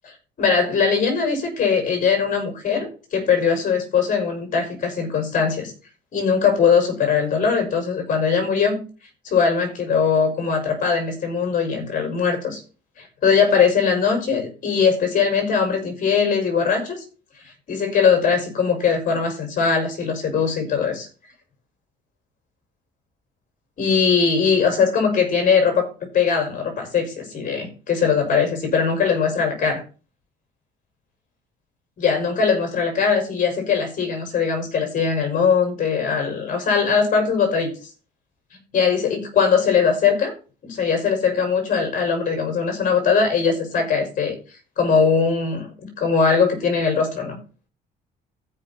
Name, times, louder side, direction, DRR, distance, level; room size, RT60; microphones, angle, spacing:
voice 1, 0.4-5.7 6.1-8.8 9.2-12.6 13.0-17.0 17.7-21.1 23.8-25.9 26.1-29.8 32.0-37.7 38.7-40.3 40.6-44.4 44.8-47.4, left 6 dB, 50° left, 4 dB, 5.5 m, -20 dB
15.5 x 5.6 x 4.3 m, 0.35 s
cardioid pair, 110°, 17 cm